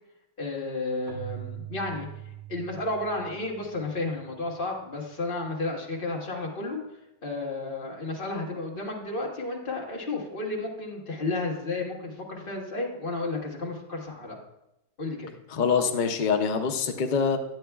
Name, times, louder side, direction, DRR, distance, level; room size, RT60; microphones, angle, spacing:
voice 1, 0.4-2.1 2.5-6.8 7.2-14.4 15.0-15.3, left 2 dB, 35° left, -1 dB, 1.5 m, -32 dB
Keyboard (musical), 1.1-4.6, right 13 dB, 45° right, 0.7 m, -43 dB
voice 2, 15.5-17.4, left 6 dB, 85° left, 5 dB, 0.4 m, -25 dB
10.5 x 8.5 x 2.3 m, 0.87 s
omnidirectional pair, 1.6 m